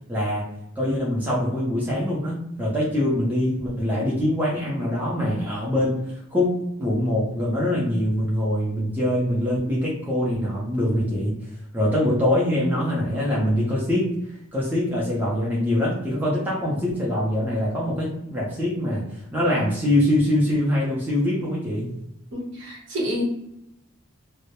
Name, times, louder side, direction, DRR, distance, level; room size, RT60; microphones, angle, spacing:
voice 1, 0.1-0.5 0.8-6.5 6.8-11.4 11.7-14.1 14.5-21.9, left 1 dB, 10° right, -6 dB, 0.5 m, -23 dB
voice 2, 22.3-23.2, equal, 60° right, -3 dB, 0.8 m, -29 dB
2.2 x 2.0 x 2.8 m, 0.81 s
head